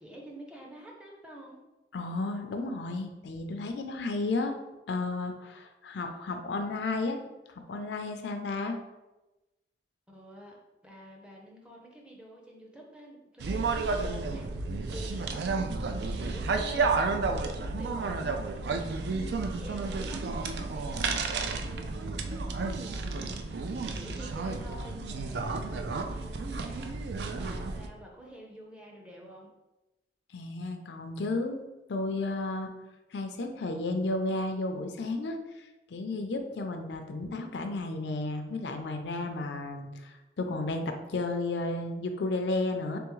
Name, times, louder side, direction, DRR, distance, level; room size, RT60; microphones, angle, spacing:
voice 1, 0.0-1.6 10.1-10.6 10.8-29.5, equal, 5° right, -2 dB, 0.5 m, -49 dB
voice 2, 1.9-4.6 4.9-7.2 7.5-8.8 30.3-32.7 33.1-43.0, left 2 dB, 80° left, 5 dB, 0.4 m, -33 dB
sound 1, 13.4-27.9, right 3 dB, 70° right, 0.4 m, -32 dB
3.5 x 3.4 x 3.1 m, 1.0 s
head